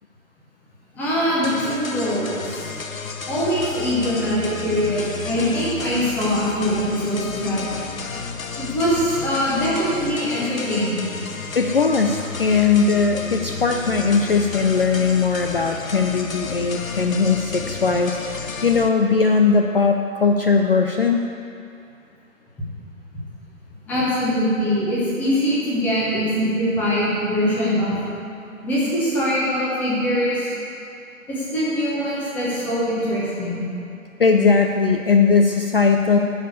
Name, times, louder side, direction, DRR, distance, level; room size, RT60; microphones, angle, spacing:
voice 1, 0.9-2.7 3.3-7.6 8.6-11.0 23.9-28.0 28.6-30.5 31.3-33.6, equal, 5° left, -8 dB, 0.9 m, -22 dB
sound 1, 1.4-18.9, left 5 dB, 75° left, 0.9 m, -32 dB
voice 2, 11.5-21.2 26.1-26.2 34.2-36.2, left 5 dB, 45° left, 3 dB, 0.5 m, -19 dB
11.0 x 4.9 x 8.1 m, 2.6 s
figure-of-eight pair, 145°, 41 cm